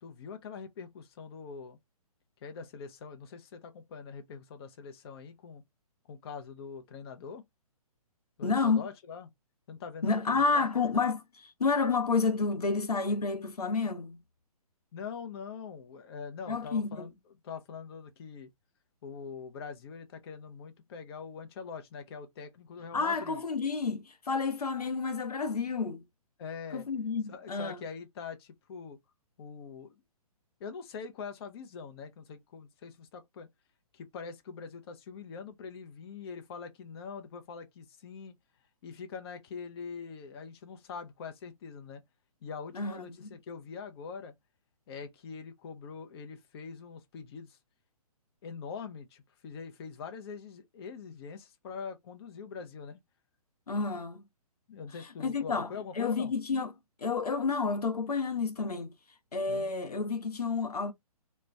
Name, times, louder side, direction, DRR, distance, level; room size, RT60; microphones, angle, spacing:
voice 1, 0.0-1.8 2.4-5.6 6.1-7.4 8.4-9.3 9.7-10.7 14.9-17.1 17.4-18.5 19.0-23.4 26.4-26.9 27.3-29.0 29.4-29.9 30.6-33.5 33.9-38.3 38.8-42.0 42.4-44.3 44.9-47.6 48.4-53.0 54.7-56.3 59.5-59.7, left 5 dB, 40° left, 0.6 m, -43 dB
voice 2, 8.4-8.8 10.0-14.2 16.5-17.1 22.9-26.0 26.7-27.8 42.7-43.3 53.7-54.2 55.2-56.7 57.0-58.9 59.3-60.9, left 4 dB, 85° left, 0.7 m, -30 dB
2.5 x 2.2 x 3.2 m
figure-of-eight pair, 135°, 19 cm